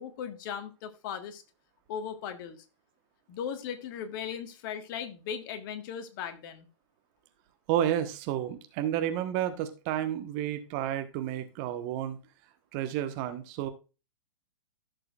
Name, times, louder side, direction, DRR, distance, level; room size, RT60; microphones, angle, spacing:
voice 1, 0.0-1.4 1.9-2.6 3.3-6.7, left 8 dB, 40° left, 8 dB, 1.5 m, -38 dB
voice 2, 7.7-12.2 12.7-13.7, right 11 dB, 35° right, 8 dB, 1.2 m, -31 dB
15.0 x 6.5 x 2.4 m, 0.31 s
figure-of-eight pair, 115°, 16 cm